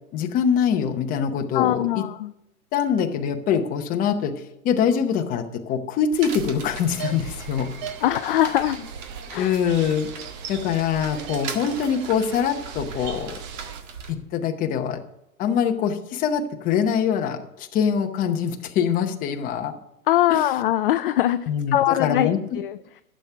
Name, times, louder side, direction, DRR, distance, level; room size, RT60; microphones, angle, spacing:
voice 1, 0.1-2.0 2.7-7.7 9.3-10.1 10.5-13.4 14.1-15.0 15.4-19.8 20.3-20.4 21.5-22.4, left 7 dB, 20° left, 5 dB, 0.8 m, -24 dB
voice 2, 1.5-2.3 8.0-8.8 9.3-9.6 20.1-22.8, left 13 dB, 40° left, 11 dB, 0.4 m, -22 dB
sound 1, 6.1-14.1, right 6 dB, 55° right, 1.9 m, -39 dB
sound 2, 6.9-13.8, right 7 dB, 25° right, 0.8 m, -39 dB
11.5 x 7.5 x 5.6 m, 0.87 s
hypercardioid pair, 140°, 43 cm